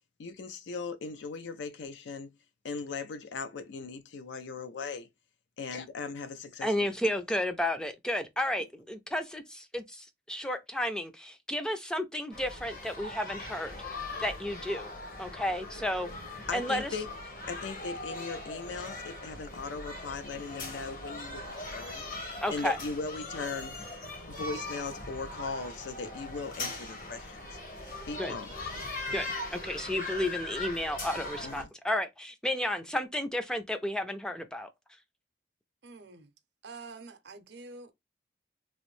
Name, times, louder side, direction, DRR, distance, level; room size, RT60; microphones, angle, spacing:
voice 1, 0.2-2.3 2.6-5.1 5.6-6.9 16.5-17.1 17.5-24.0 24.3-27.6 28.1-28.5 31.4-31.7, left 4 dB, 80° left, 0.4 m, -39 dB
voice 2, 6.6-13.8 14.2-14.9 15.2-16.1 16.5-16.9 22.4-22.8 28.2-28.4 29.1-34.7, left 1 dB, 5° left, 0.4 m, -32 dB
sound 1, 12.3-31.6, left 2 dB, 50° left, 1.0 m, -40 dB
voice 3, 35.8-36.3 36.6-37.9, right 3 dB, 70° right, 0.6 m, -47 dB
3.0 x 2.5 x 3.0 m
head